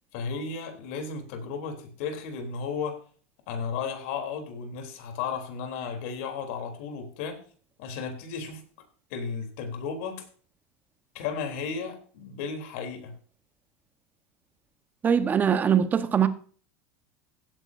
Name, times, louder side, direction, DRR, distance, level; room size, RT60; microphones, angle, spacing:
voice 1, 0.1-3.0 3.5-7.4 7.8-8.6 9.1-10.3 11.1-13.1, left 5 dB, 70° left, 3.4 m, -34 dB
voice 2, 15.0-16.3, right 8 dB, 25° right, 1.2 m, -22 dB
16.0 x 9.7 x 2.7 m
supercardioid pair, 115°, 7 cm